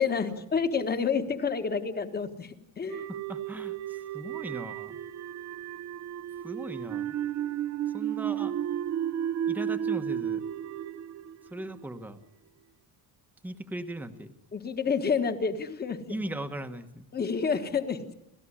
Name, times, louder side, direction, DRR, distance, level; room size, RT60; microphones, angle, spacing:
voice 1, 0.0-3.1 14.5-16.2 17.1-18.1, left 6 dB, 25° left, 8 dB, 1.6 m, -29 dB
sound 1, 2.9-12.1, right 10 dB, 45° right, 0.9 m, -33 dB
voice 2, 3.1-5.0 6.4-7.1 7.9-8.5 9.5-10.4 11.5-12.2 13.4-14.3 16.1-17.1, right 1 dB, 5° right, 8 dB, 1.2 m, -38 dB
29.5 x 15.0 x 9.9 m, 0.83 s
cardioid pair, 170°, 38 cm